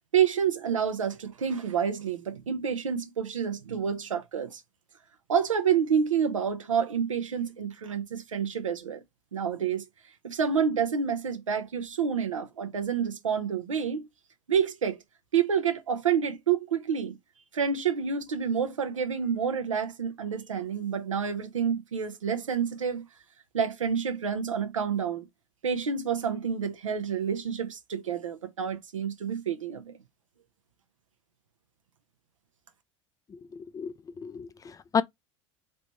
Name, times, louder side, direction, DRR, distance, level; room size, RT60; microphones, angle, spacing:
voice 1, 0.1-4.6 5.3-9.0 9.3-9.8 10.2-14.1 14.5-15.0 15.3-17.2 17.5-23.0 23.5-25.3 25.6-30.0, right 7 dB, 85° right, 0.8 m, -28 dB
voice 2, 33.5-35.0, left 6 dB, 20° left, 0.4 m, -31 dB
3.3 x 3.1 x 4.1 m
hypercardioid pair, 75°, 16 cm